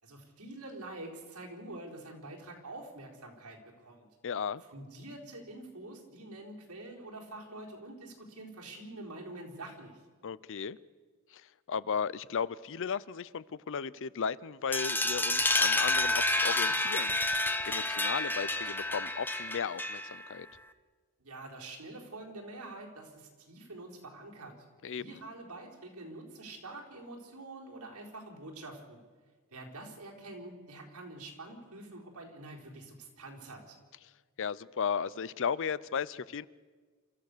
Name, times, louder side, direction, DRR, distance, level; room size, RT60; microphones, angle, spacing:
voice 1, 0.0-4.1 4.7-10.0 21.2-24.5 25.0-29.0 29.5-33.8, right 2 dB, 90° right, 4.3 m, -46 dB
voice 2, 4.2-4.6 10.2-10.8 11.3-11.4 11.7-20.5 24.8-25.2 34.4-36.5, left 6 dB, 60° left, 0.5 m, -35 dB
sound 1, 14.7-20.3, left 2 dB, 10° left, 1.1 m, -29 dB
29.0 x 14.0 x 6.7 m
head